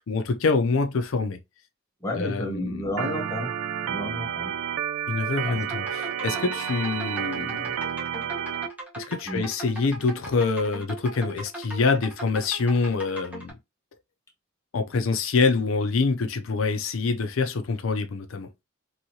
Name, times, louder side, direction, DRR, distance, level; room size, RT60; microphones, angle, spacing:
voice 1, 0.0-1.4 2.1-2.9 5.1-7.8 9.0-13.6 14.7-18.5, left 4 dB, 75° left, 0.5 m, -26 dB
voice 2, 2.0-3.6 3.8-4.5 5.4-5.6 6.0-6.1 9.3-9.5, left 1 dB, 15° left, 0.7 m, -31 dB
Organ, 3.0-8.7, right 9 dB, 80° right, 0.4 m, -30 dB
sound 1, 5.6-13.5, right 2 dB, 10° right, 0.9 m, -39 dB
2.9 x 2.7 x 2.7 m
head